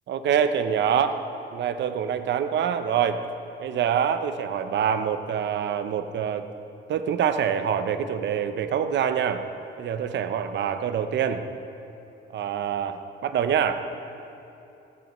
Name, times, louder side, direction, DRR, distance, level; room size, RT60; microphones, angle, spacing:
voice 1, 0.1-1.2 1.5-3.2 3.6-6.4 6.9-9.4 9.8-11.5 12.3-13.8, right 8 dB, 65° right, 9 dB, 0.7 m, -25 dB
16.0 x 14.0 x 3.1 m, 2.9 s
cardioid pair, 90°, 20 cm